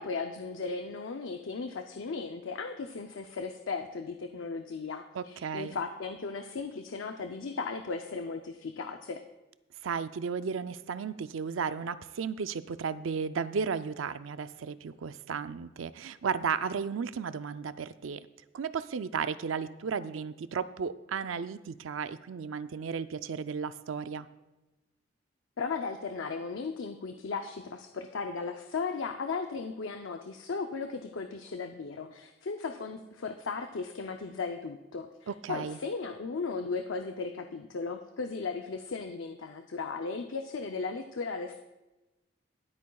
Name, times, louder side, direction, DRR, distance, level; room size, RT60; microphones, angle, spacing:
voice 1, 0.0-9.2 25.6-41.6, left 4 dB, 80° left, 6 dB, 0.5 m, -36 dB
voice 2, 5.1-5.8 9.8-18.3 18.5-24.3 35.3-35.8, right 6 dB, 85° right, 13 dB, 0.4 m, -34 dB
21.5 x 8.4 x 2.3 m, 1.0 s
head